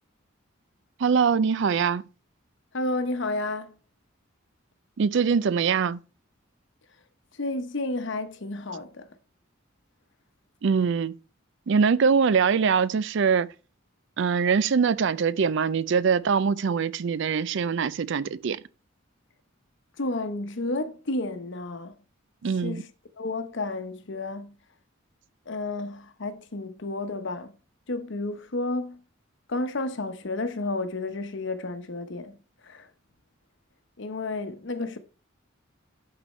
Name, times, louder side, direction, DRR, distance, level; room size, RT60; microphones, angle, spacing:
voice 1, 1.0-2.0 5.0-6.0 10.6-11.2 11.7-13.5 14.2-18.6 22.4-22.8, right 6 dB, 65° right, 0.4 m, -23 dB
voice 2, 2.7-3.7 7.3-9.1 20.0-21.9 22.6-22.9 23.2-24.5 25.5-27.5 27.9-29.0 29.5-32.4 32.6-32.9 34.0-35.0, left 2 dB, 65° left, 0.9 m, -31 dB
11.5 x 4.3 x 4.3 m
head